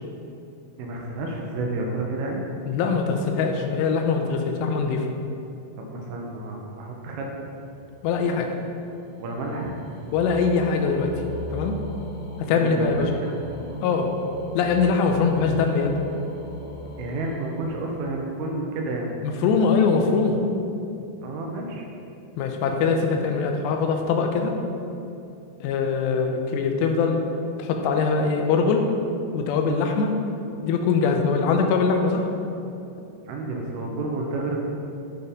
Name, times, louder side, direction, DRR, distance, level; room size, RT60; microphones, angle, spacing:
voice 1, 0.8-2.4 5.8-7.3 9.2-9.8 12.6-13.4 13.7-13.8 17.0-19.1 21.2-21.9 33.3-34.7, right 2 dB, 80° right, 0 dB, 2.4 m, -30 dB
voice 2, 2.7-5.1 8.0-8.5 10.1-11.1 11.5-11.8 12.4-13.1 13.8-14.1 14.5-16.0 19.2-20.4 22.4-24.5 25.6-27.2 27.6-28.9 29.3-30.1 30.6-32.3, left 5 dB, 85° left, 4 dB, 2.8 m, -22 dB
sound 1, 7.6-18.5, equal, 55° left, 3.0 m, -39 dB
8.9 x 4.1 x 5.1 m, 2.7 s
omnidirectional pair, 4.8 m